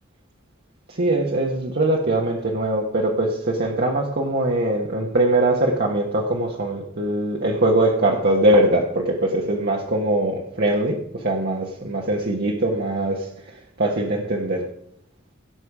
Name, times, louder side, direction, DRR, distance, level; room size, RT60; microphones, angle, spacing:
voice 1, 0.9-13.3 13.8-14.7, right 1 dB, 55° right, -1 dB, 1.3 m, -22 dB
16.5 x 6.6 x 4.8 m, 0.75 s
head